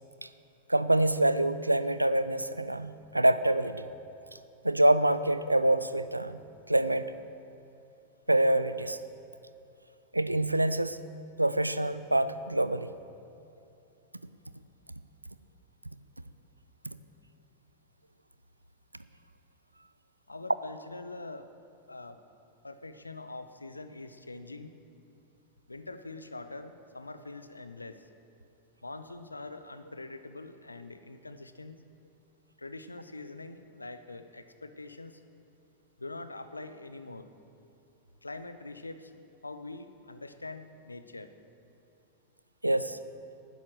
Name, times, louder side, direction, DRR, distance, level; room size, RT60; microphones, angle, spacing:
voice 1, 0.7-3.8 4.6-6.4 6.7-7.1 8.3-9.0 10.1-11.0 11.4-12.9 42.6-43.0, right 1 dB, 85° right, 14 dB, 0.4 m, -26 dB
voice 2, 20.3-21.5 21.9-22.2 22.6-24.8 25.7-28.1 28.8-31.8 32.6-35.2 36.0-37.3 38.2-39.1 39.4-41.3, left 2 dB, 80° left, 10 dB, 0.6 m, -44 dB
12.0 x 9.8 x 6.4 m, 2.7 s
figure-of-eight pair, 90°, 0 cm